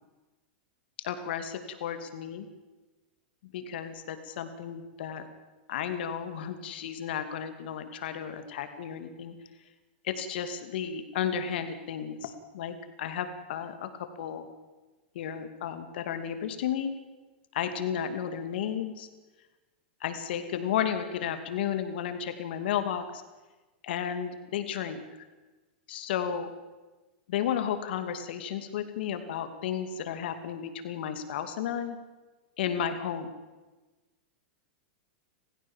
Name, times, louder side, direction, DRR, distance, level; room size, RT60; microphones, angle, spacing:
voice 1, 1.0-2.5 3.5-5.3 5.7-9.3 10.0-13.9 14.2-14.5 15.1-16.9 17.5-19.1 20.0-23.2 23.8-25.0 25.9-26.5 27.3-32.0 32.6-33.3, left 8 dB, 70° left, 9 dB, 2.6 m, -33 dB
28.5 x 15.5 x 7.4 m, 1.2 s
supercardioid pair, 135°, 6 cm